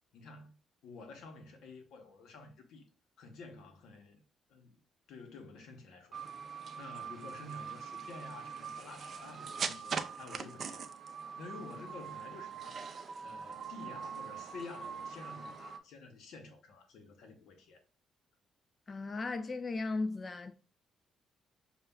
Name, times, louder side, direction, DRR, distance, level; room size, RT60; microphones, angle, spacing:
voice 1, 0.1-0.6 0.8-2.9 3.2-4.2 4.5-4.8 5.1-6.2 6.8-10.9 11.4-12.8 13.2-17.8, left 3 dB, 80° left, 0.8 m, -50 dB
sound 1, 6.1-15.8, right 6 dB, 50° right, 0.4 m, -42 dB
voice 2, 18.9-20.5, left 3 dB, 35° left, 0.3 m, -36 dB
6.5 x 2.3 x 2.2 m
cardioid pair, 90°, 0 cm